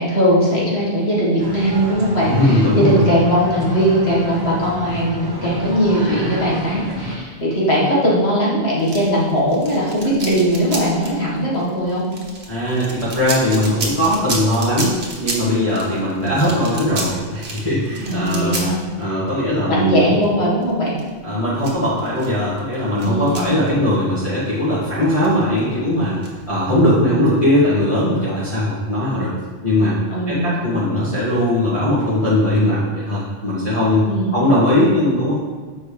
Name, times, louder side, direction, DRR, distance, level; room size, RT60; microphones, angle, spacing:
voice 1, 0.0-12.1 18.1-18.8 19.7-21.0 23.0-23.5 30.1-30.5 34.1-34.4, equal, 70° left, -6 dB, 2.1 m, -19 dB
sound 1, 1.4-7.2, equal, 25° right, 0.8 m, -31 dB
voice 2, 2.2-3.0 12.5-18.7 19.0-20.0 21.2-26.2 26.5-29.3 29.6-30.0 30.3-35.3, left 1 dB, 30° left, -12 dB, 1.8 m, -19 dB
sound 2, 8.8-24.2 24.5-24.6 25.0-26.9, right 2 dB, 70° right, 1.5 m, -31 dB
7.1 x 4.8 x 4.9 m, 1.5 s
omnidirectional pair, 1.1 m